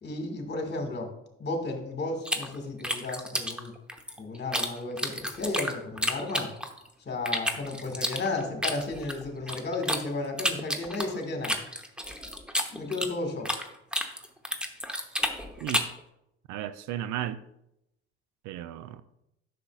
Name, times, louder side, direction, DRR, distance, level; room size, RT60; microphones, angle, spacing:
voice 1, 0.0-1.1 1.4-3.7 4.2-6.5 7.1-11.6 12.7-13.5, left 2 dB, 35° left, 1.9 m, -33 dB
sound 1, 2.3-4.7 5.0-6.9 7.3-10.0 10.4-13.7 13.9-16.0, equal, 5° right, 1.0 m, -30 dB
voice 2, 16.5-17.4 18.4-19.0, right 12 dB, 70° right, 0.5 m, -34 dB
9.8 x 6.7 x 2.4 m
supercardioid pair, 75°, 32 cm